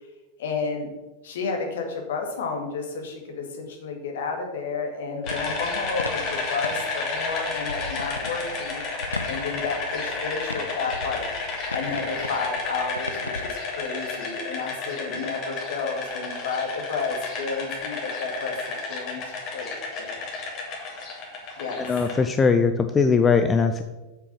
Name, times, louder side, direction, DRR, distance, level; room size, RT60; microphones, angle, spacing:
voice 1, 0.4-0.9 1.2-8.8 9.2-11.2 11.7-19.2 19.5-19.7 20.0-20.3 21.6-21.8, left 4 dB, 60° left, 3 dB, 2.1 m, -31 dB
sound 1, 5.2-13.5, left 2 dB, 80° left, 0.5 m, -38 dB
sound 2, 5.2-22.2, left 3 dB, 40° left, 2.7 m, -32 dB
voice 2, 21.8-23.8, left 5 dB, 20° left, 8 dB, 0.5 m, -20 dB
7.4 x 6.9 x 6.1 m, 1.1 s
figure-of-eight pair, 90°, 0 cm